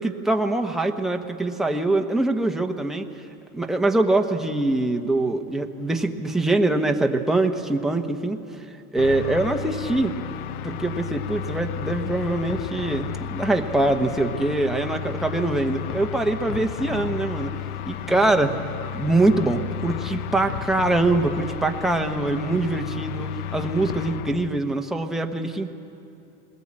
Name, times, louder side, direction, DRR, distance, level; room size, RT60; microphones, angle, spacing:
voice 1, 0.0-3.1 3.5-8.4 8.9-10.2 10.6-17.6 17.9-18.6 18.9-25.7, right 2 dB, ahead, 3 dB, 1.1 m, -23 dB
sound 1, 9.0-24.6, left 9 dB, 90° left, 0.8 m, -32 dB
20.0 x 19.5 x 8.8 m, 2.7 s
supercardioid pair, 120°, 43 cm